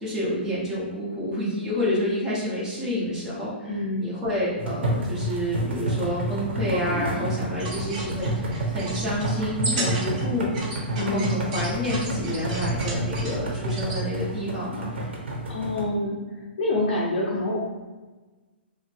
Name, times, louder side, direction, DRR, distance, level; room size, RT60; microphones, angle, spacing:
voice 1, 0.0-3.5 4.0-14.9, left 1 dB, 10° right, -8 dB, 1.0 m, -29 dB
voice 2, 3.6-4.1 11.0-11.4 15.5-16.2 16.6-17.6, left 1 dB, 50° left, -5 dB, 0.6 m, -26 dB
sound 1, 4.6-15.8, right 1 dB, 80° right, 0.9 m, -29 dB
sound 2, 7.5-14.0, right 2 dB, 40° right, 0.9 m, -34 dB
3.1 x 2.1 x 3.3 m, 1.2 s
hypercardioid pair, 150°, 6 cm